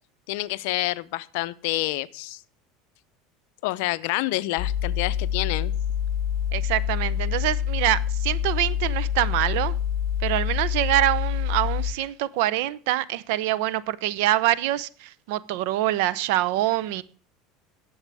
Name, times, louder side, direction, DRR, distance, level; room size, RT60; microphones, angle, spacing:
voice 1, 0.3-2.4 3.6-5.7, left 19 dB, 70° left, 0.6 m, -28 dB
sound 1, 4.6-11.9, left 9 dB, 50° left, 1.8 m, -26 dB
voice 2, 6.5-9.7 10.2-17.0, right 15 dB, 70° right, 0.7 m, -25 dB
19.0 x 7.2 x 3.5 m
supercardioid pair, 135°, 0 cm